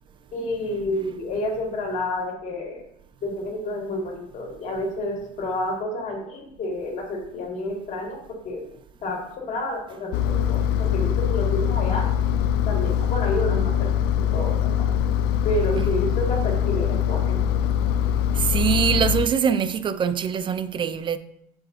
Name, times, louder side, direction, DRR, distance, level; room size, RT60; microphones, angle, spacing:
voice 1, 0.3-2.8 3.2-8.2 8.4-8.6 9.0-12.1 12.6-13.9 14.3-14.8 15.4-17.4, left 1 dB, 45° left, 2.1 m, -29 dB
Engine, 10.1-19.3, left 9 dB, 70° left, 0.4 m, -23 dB
voice 2, 18.4-21.2, right 7 dB, 30° right, 0.4 m, -23 dB
7.4 x 4.8 x 3.8 m
cardioid pair, 120°, 17 cm